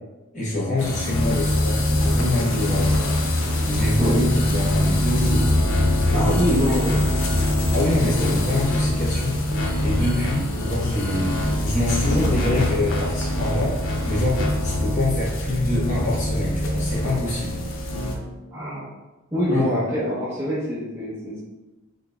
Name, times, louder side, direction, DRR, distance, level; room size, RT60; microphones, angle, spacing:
voice 1, 0.3-2.9 3.6-5.6 6.1-6.9 7.7-13.7 14.1-17.6 19.5-19.8, left 1 dB, 35° left, -8 dB, 1.1 m, -25 dB
sound 1, 0.8-18.2, left 1 dB, 65° left, 0.5 m, -23 dB
voice 2, 3.8-4.3 6.1-7.1 8.2-8.3 18.5-18.8 19.3-21.4, equal, 10° right, -10 dB, 0.7 m, -25 dB
3.9 x 2.6 x 2.2 m, 1.1 s
head